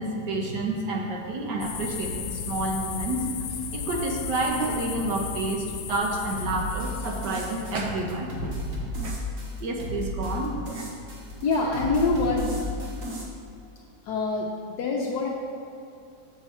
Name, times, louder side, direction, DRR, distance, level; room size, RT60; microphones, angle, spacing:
voice 1, 0.0-3.2 3.7-8.5 9.0-9.2 9.6-10.8, right 2 dB, 70° right, 0 dB, 1.6 m, -29 dB
sound 1, 1.6-7.8, left 6 dB, 90° left, 1.4 m, -35 dB
sound 2, 6.4-13.2, equal, 50° right, 1.6 m, -34 dB
voice 2, 11.4-12.4 14.0-15.3, left 3 dB, 70° left, -2 dB, 1.2 m, -25 dB
7.3 x 6.3 x 4.3 m, 2.5 s
omnidirectional pair, 2.0 m